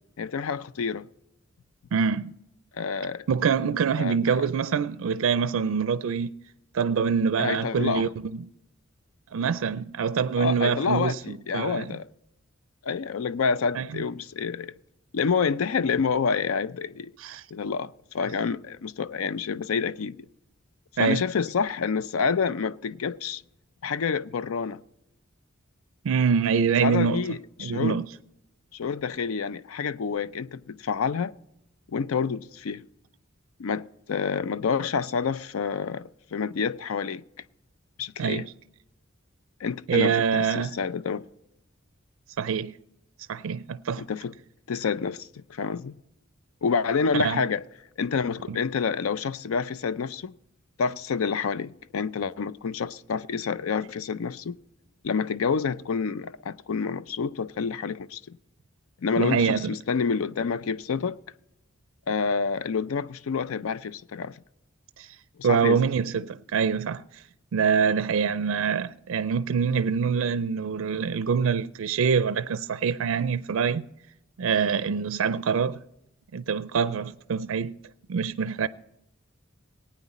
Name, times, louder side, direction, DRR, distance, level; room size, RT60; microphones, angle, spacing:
voice 1, 0.2-1.1 2.7-3.3 4.0-4.5 7.4-8.1 10.4-12.1 12.8-14.7 15.1-17.1 17.5-20.2 21.0-23.4 23.8-24.8 26.8-28.0 28.7-31.3 31.9-32.8 33.6-37.2 38.0-38.5 39.6-41.3 44.0-44.3 44.7-46.0 46.6-47.6 48.0-50.3 50.8-54.6 55.0-58.4 59.0-61.2 62.1-64.3 65.4-65.8, left 5 dB, 85° left, 0.5 m, -28 dB
voice 2, 1.9-2.3 3.3-6.3 6.7-8.3 9.3-12.0 13.7-14.0 17.2-17.4 21.0-21.2 26.0-27.2 27.6-28.1 38.2-38.5 39.9-40.7 42.4-42.7 43.3-44.0 47.1-47.4 48.5-48.6 59.2-59.7 65.0-65.2 65.4-67.2 67.5-73.8 74.4-75.8 76.3-77.7 78.1-78.7, right 6 dB, 70° right, 0.4 m, -25 dB
18.5 x 9.2 x 4.1 m
head